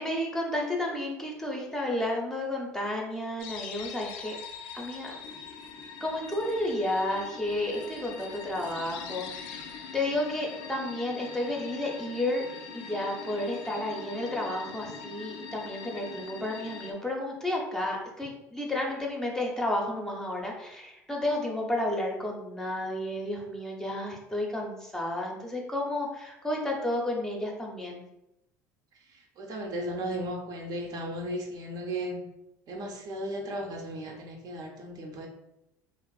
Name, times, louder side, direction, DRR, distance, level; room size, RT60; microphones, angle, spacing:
voice 1, 0.0-4.3 4.7-5.2 6.0-12.4 12.7-28.0, left 1 dB, 5° left, -1 dB, 0.6 m, -32 dB
sound 1, 3.4-16.9, left 6 dB, 70° left, 0.4 m, -42 dB
voice 2, 29.1-32.2 32.7-35.3, right 1 dB, 50° right, 1 dB, 0.6 m, -35 dB
2.5 x 2.4 x 2.3 m, 0.87 s
hypercardioid pair, 80°, 8 cm